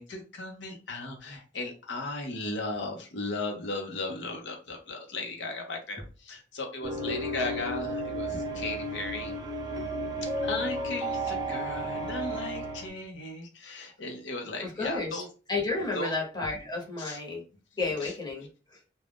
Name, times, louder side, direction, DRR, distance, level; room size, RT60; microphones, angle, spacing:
voice 1, 0.0-9.3 10.2-15.3 15.9-16.1 17.0-17.2 18.0-18.1, left 2 dB, 90° left, 2 dB, 0.7 m, -36 dB
sound 1, 6.8-12.9, right 1 dB, 25° right, 0.5 m, -33 dB
voice 2, 14.6-15.2 15.5-17.4 17.8-18.5, left 3 dB, 25° left, -2 dB, 0.9 m, -31 dB
2.4 x 2.2 x 3.4 m, 0.35 s
head